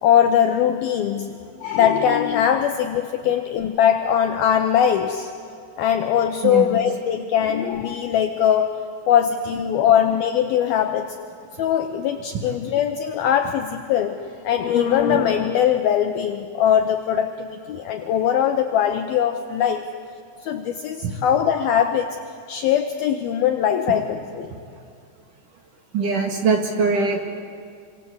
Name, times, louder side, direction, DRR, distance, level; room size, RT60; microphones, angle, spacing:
voice 1, 0.0-5.3 5.8-11.2 11.6-19.9 20.4-22.2 22.5-24.5, left 9 dB, 85° left, 6 dB, 2.1 m, -21 dB
voice 2, 6.4-6.8 21.0-21.1 25.9-27.2, right 4 dB, 55° right, 3 dB, 2.7 m, -22 dB
28.0 x 24.5 x 8.2 m, 2.4 s
omnidirectional pair, 5.5 m